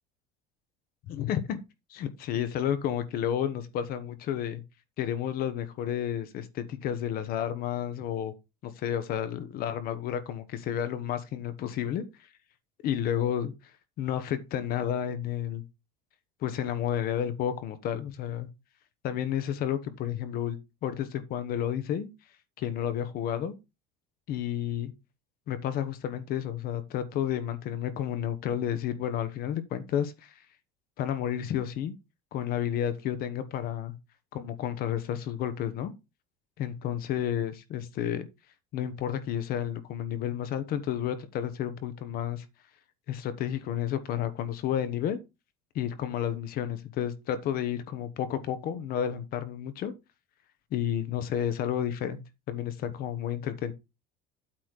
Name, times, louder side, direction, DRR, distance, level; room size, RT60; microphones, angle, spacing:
voice 1, 1.1-1.6 1.9-4.6 5.0-8.3 8.6-12.0 12.8-13.5 14.0-15.6 16.4-18.5 19.0-22.1 22.6-23.5 24.3-24.9 25.5-30.3 31.0-31.9 32.3-33.9 34.3-35.9 36.6-38.3 38.7-42.4 43.1-45.2 45.7-49.9 50.7-52.2 52.5-53.7, left 10 dB, 45° left, 1.1 m, -31 dB
8.6 x 4.1 x 6.4 m
cardioid pair, 170°, 21 cm